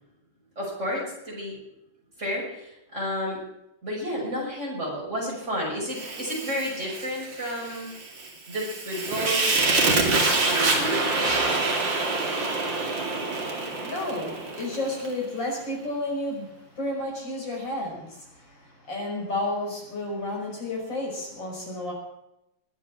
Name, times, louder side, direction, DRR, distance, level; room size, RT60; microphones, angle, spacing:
voice 1, 0.6-1.6 2.2-3.4 3.8-7.9 8.5-11.0, equal, 35° right, -3 dB, 6.6 m, -31 dB
Fire, 5.9-15.1, right 3 dB, 65° right, 3.3 m, -26 dB
voice 2, 13.8-21.9, left 1 dB, 65° left, -2 dB, 6.5 m, -32 dB
21.5 x 8.2 x 7.4 m, 0.87 s
omnidirectional pair, 2.2 m